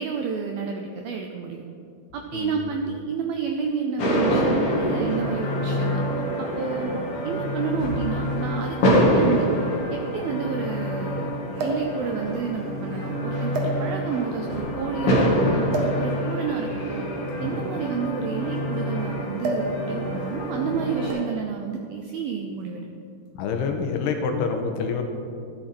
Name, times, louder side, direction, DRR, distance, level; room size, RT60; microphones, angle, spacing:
voice 1, 0.0-1.6 2.1-6.0 6.4-7.0 7.2-8.8 9.1-9.5 9.9-15.7 16.0-17.1 17.4-22.9, right 6 dB, 85° right, 3 dB, 2.1 m, -30 dB
voice 2, 2.3-2.7 23.3-25.0, left 5 dB, 75° left, 4 dB, 2.8 m, -27 dB
sound 1, 4.0-21.1, equal, 45° left, 1.9 m, -26 dB
sound 2, 7.8-7.9 9.0-9.1 9.4-9.5 11.5-12.0 12.8-13.0 13.5-14.2 15.7-16.0 17.2-18.8 19.4-19.8 20.0-20.3 21.1-21.5 22.4-22.7, right 1 dB, 65° right, 1.6 m, -30 dB
14.0 x 11.5 x 4.3 m, 2.5 s
omnidirectional pair, 5.2 m